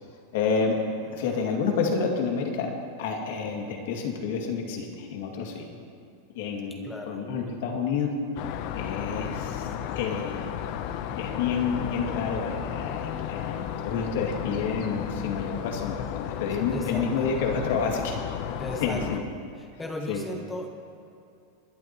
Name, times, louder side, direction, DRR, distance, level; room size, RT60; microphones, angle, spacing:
voice 1, 0.3-0.8 1.1-2.7 3.0-5.7 6.3-8.1 8.7-9.7 10.0-10.4 11.1-18.2 18.8-19.2 20.1-20.2, left 5 dB, 70° left, 1 dB, 2.1 m, -29 dB
voice 2, 1.0-1.6 6.8-7.3 16.7-17.3 18.6-19.3 19.5-20.7, left 1 dB, 10° left, 2 dB, 1.1 m, -37 dB
sound 1, 8.4-19.2, left 9 dB, 55° left, 0.7 m, -33 dB
21.5 x 11.5 x 3.0 m, 2.6 s
supercardioid pair, 130°, 0 cm